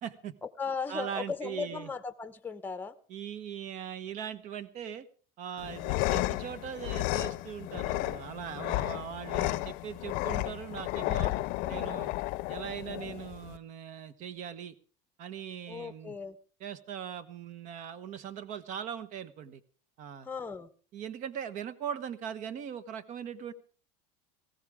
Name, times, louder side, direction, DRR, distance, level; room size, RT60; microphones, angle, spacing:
voice 1, 0.0-0.3 0.9-1.9 3.1-5.1 5.4-11.3 11.7-12.1 12.5-14.7 15.2-16.2 16.6-19.6 20.0-20.3 20.9-23.5, right 9 dB, 45° right, 1.1 m, -40 dB
voice 2, 0.6-2.9 11.6-12.1 15.7-16.4 20.2-20.7, left 5 dB, 10° left, 0.9 m, -37 dB
sound 1, 5.6-13.6, left 19 dB, 55° left, 0.7 m, -33 dB
19.5 x 16.0 x 3.6 m
cardioid pair, 145°, 17 cm